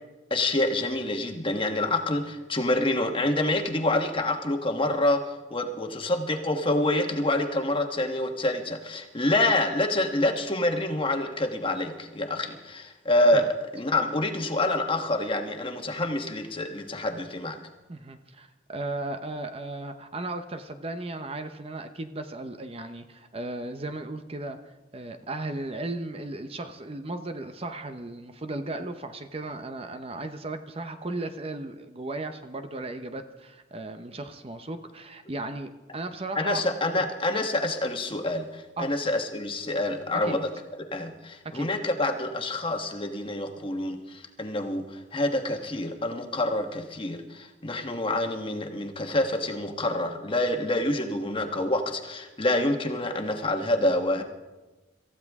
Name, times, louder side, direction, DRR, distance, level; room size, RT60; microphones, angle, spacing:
voice 1, 0.3-17.6 36.3-40.5 40.8-54.2, left 1 dB, 30° left, 5 dB, 1.4 m, -27 dB
voice 2, 17.9-36.6 36.9-37.1 38.8-38.9 40.1-40.4 41.4-41.7, right 2 dB, 30° right, 8 dB, 0.8 m, -36 dB
27.0 x 14.5 x 3.6 m, 1.2 s
head